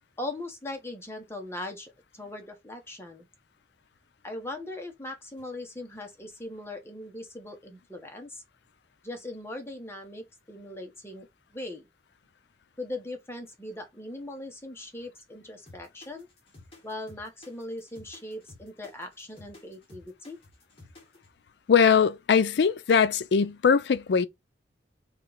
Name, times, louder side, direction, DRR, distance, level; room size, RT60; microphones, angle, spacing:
voice 1, 0.2-3.3 4.2-8.4 9.0-11.3 11.5-11.9 12.8-16.3 16.8-20.4, left 1 dB, 15° left, 0.9 m, -39 dB
sound 1, 15.7-21.3, left 2 dB, 30° left, 1.6 m, -52 dB
voice 2, 21.7-24.3, left 6 dB, 70° left, 0.4 m, -21 dB
3.1 x 2.9 x 3.9 m
head